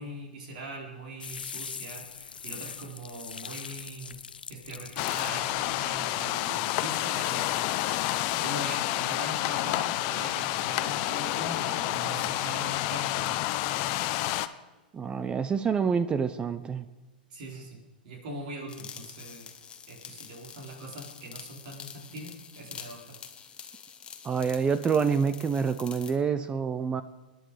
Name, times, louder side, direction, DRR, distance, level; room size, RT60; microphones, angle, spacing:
voice 1, 0.0-4.1 4.5-7.6 8.4-13.3 17.3-17.8 18.0-19.5 19.9-23.2, right 1 dB, 60° right, 1 dB, 4.8 m, -41 dB
sound 1, 1.2-6.4, left 6 dB, 80° left, 0.6 m, -42 dB
sound 2, 5.0-14.5, left 15 dB, 45° left, 0.8 m, -29 dB
voice 2, 14.9-16.9 24.2-27.0, right 6 dB, 20° right, 13 dB, 0.7 m, -27 dB
sound 3, 18.7-26.2, left 7 dB, 20° left, 1.3 m, -46 dB
25.5 x 10.5 x 5.0 m, 1.2 s
hypercardioid pair, 105°, 5 cm